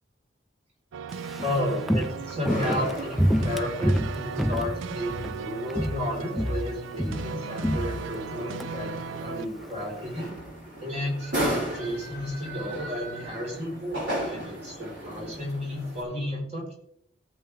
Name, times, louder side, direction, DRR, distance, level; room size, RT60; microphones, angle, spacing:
sound 1, 0.9-9.5, right 6 dB, 90° right, 0.4 m, -37 dB
Walk footsteps, 1.1-5.4 5.7-6.1 6.4-8.7 9.0-9.1, equal, ahead, 0.4 m, -27 dB
voice 1, 1.4-10.3 10.8-16.7, left 1 dB, 35° right, -2 dB, 4.7 m, -33 dB
sound 2, 2.5-16.0, right 1 dB, 65° right, 5.7 m, -36 dB
17.0 x 8.2 x 3.5 m, 0.68 s
head